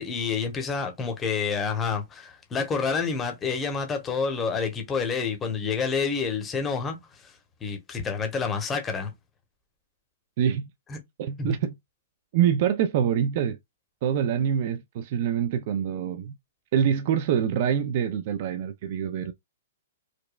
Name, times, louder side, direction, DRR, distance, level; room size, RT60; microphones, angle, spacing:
voice 1, 0.0-7.0 7.2-7.3 7.6-9.1 10.9-11.0 11.4-11.5, left 5 dB, 15° left, 0.9 m, -28 dB
voice 2, 10.4-10.7 11.2-11.7 12.3-13.6 14.0-16.3 16.7-19.3, right 9 dB, 40° right, 0.4 m, -25 dB
4.8 x 2.2 x 2.3 m
hypercardioid pair, 160°, 0 cm